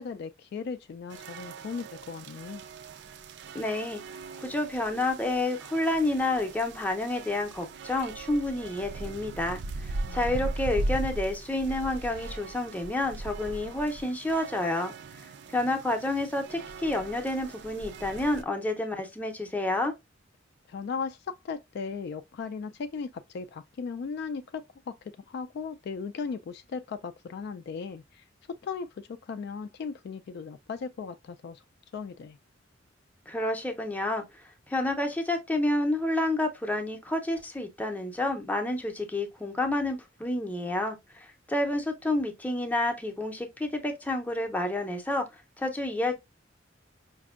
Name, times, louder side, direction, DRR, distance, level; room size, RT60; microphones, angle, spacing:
voice 1, 0.0-2.6 10.1-10.5 20.7-31.6 31.9-32.4, left 5 dB, 55° left, 0.3 m, -37 dB
sound 1, 1.1-18.4, right 2 dB, 60° right, 0.4 m, -39 dB
voice 2, 3.5-4.0 4.4-14.9 15.5-19.9 33.3-34.2 34.7-45.2 45.6-46.2, left 2 dB, 10° left, 0.6 m, -29 dB
5.0 x 2.6 x 2.4 m
head